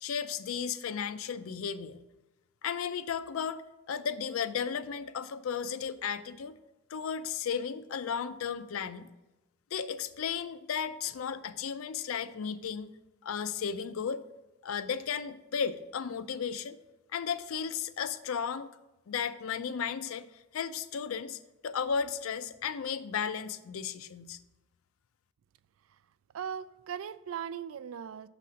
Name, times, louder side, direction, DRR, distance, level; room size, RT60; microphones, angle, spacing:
voice 1, 0.0-2.0 2.6-3.6 3.9-6.5 6.9-9.1 9.7-12.9 13.2-14.2 14.6-16.8 17.1-18.7 19.1-20.3 20.5-24.4, left 7 dB, 85° left, 13 dB, 0.4 m, -34 dB
voice 2, 26.3-28.3, right 8 dB, 80° right, 16 dB, 0.3 m, -38 dB
6.5 x 4.1 x 6.2 m, 1.0 s
head